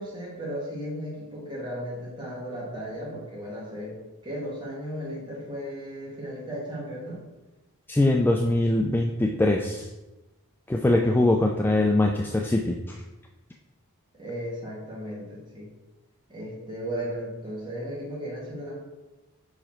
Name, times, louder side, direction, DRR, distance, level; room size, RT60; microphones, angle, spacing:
voice 1, 0.0-7.2 10.8-11.3 14.1-15.7 16.3-18.8, equal, 20° right, -5 dB, 2.1 m, -35 dB
voice 2, 7.9-9.9 10.7-12.8, left 1 dB, 10° left, 2 dB, 0.3 m, -22 dB
5.4 x 4.8 x 4.4 m, 1.1 s
head